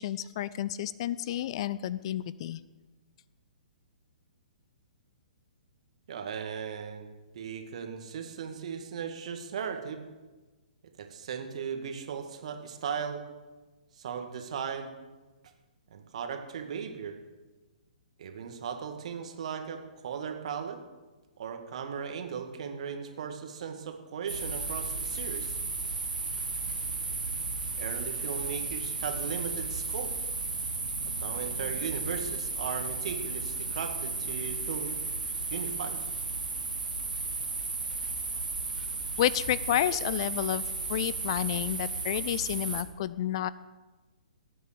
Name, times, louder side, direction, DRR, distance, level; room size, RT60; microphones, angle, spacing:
voice 1, 0.0-2.6 39.2-40.6 40.9-43.5, left 12 dB, 40° left, 18 dB, 0.5 m, -30 dB
voice 2, 6.1-7.1 7.3-10.1 11.0-13.2 13.9-14.9 15.9-17.2 18.2-20.8 21.4-25.6 27.7-30.1 31.2-35.0 35.5-36.0, right 7 dB, 50° right, 5 dB, 2.0 m, -37 dB
sound 1, 24.3-42.8, right 3 dB, 75° right, 1.8 m, -34 dB
18.0 x 9.4 x 6.8 m, 1.2 s
figure-of-eight pair, 120°, 5 cm